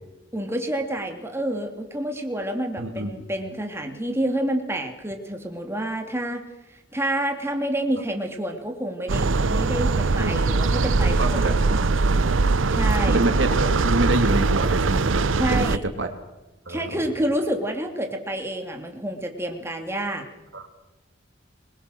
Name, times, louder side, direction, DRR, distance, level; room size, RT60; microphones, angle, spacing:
voice 1, 0.3-6.4 6.9-11.5 12.7-13.2 15.4-15.8 16.7-20.3, right 1 dB, 15° right, 3 dB, 2.8 m, -28 dB
voice 2, 2.8-3.2 10.2-10.5 11.2-11.9 13.1-16.1 16.7-16.9 20.5-20.7, right 1 dB, 75° right, 5 dB, 3.1 m, -27 dB
sound 1, 9.1-15.8, right 3 dB, 90° right, 0.8 m, -21 dB
26.0 x 21.5 x 6.5 m, 1.0 s
head